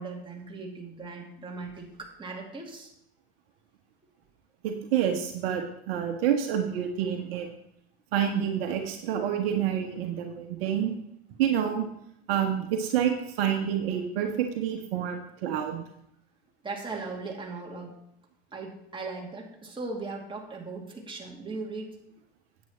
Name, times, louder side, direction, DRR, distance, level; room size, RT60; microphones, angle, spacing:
voice 1, 0.0-2.9 16.6-18.0 18.5-21.9, right 3 dB, 15° right, -1 dB, 2.4 m, -38 dB
voice 2, 4.6-7.5 8.1-10.9 11.4-11.9 12.3-15.8, right 9 dB, 60° right, 4 dB, 1.3 m, -28 dB
9.4 x 8.4 x 4.3 m, 0.73 s
hypercardioid pair, 85°, 33 cm